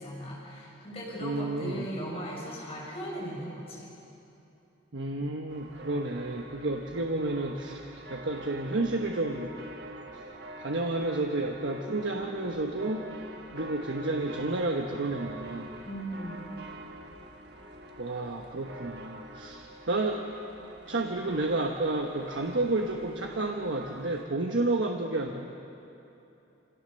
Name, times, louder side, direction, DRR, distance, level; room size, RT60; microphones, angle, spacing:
voice 1, 0.0-3.9 15.8-16.6, equal, 30° left, -5 dB, 6.5 m, -38 dB
voice 2, 1.2-1.8 4.9-9.5 10.1-10.2 10.6-13.1 13.5-15.7 18.0-20.2 20.9-25.5, right 2 dB, 80° right, 1 dB, 1.2 m, -31 dB
sound 1, 5.5-24.2, right 1 dB, 60° right, 1.5 m, -45 dB
26.0 x 17.5 x 6.6 m, 2.9 s
head